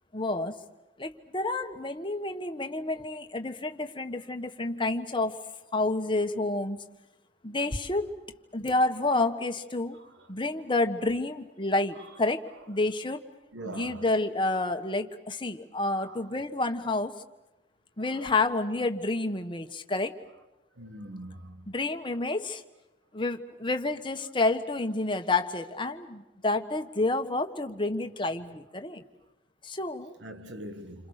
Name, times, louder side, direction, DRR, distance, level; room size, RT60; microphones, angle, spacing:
voice 1, 0.1-0.5 1.0-5.4 5.7-6.8 7.4-8.1 8.5-10.0 10.3-13.2 13.7-17.1 18.0-20.2 21.7-22.6 23.1-29.0 29.6-30.1, left 2 dB, 25° left, 1.4 m, -29 dB
voice 2, 13.5-14.2 16.0-16.2 18.0-18.3 20.8-21.7 30.2-31.1, right 1 dB, 75° right, 1.5 m, -43 dB
29.0 x 26.5 x 6.7 m
head